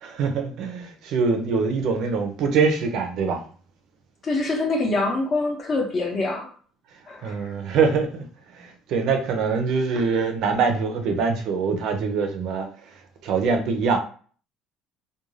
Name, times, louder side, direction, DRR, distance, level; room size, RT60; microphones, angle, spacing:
voice 1, 0.0-3.4 7.2-8.3 8.5-12.7 13.2-14.0, right 5 dB, 50° right, 0.5 m, -23 dB
voice 2, 4.2-6.5 7.1-7.5, left 2 dB, 25° left, 0.6 m, -25 dB
2.4 x 2.2 x 3.1 m
cardioid pair, 180°, 0 cm